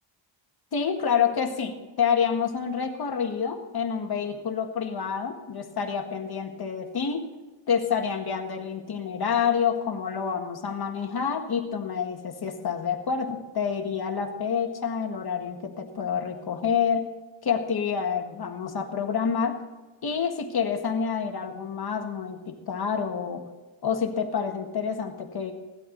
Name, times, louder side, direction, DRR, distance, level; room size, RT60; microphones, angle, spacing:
voice 1, 0.7-7.3 7.7-17.1 17.4-19.6 20.0-23.4 23.8-25.5, left 6 dB, 50° left, 4 dB, 1.8 m, -28 dB
18.0 x 12.0 x 4.0 m, 1.2 s
wide cardioid pair, 155°, 49 cm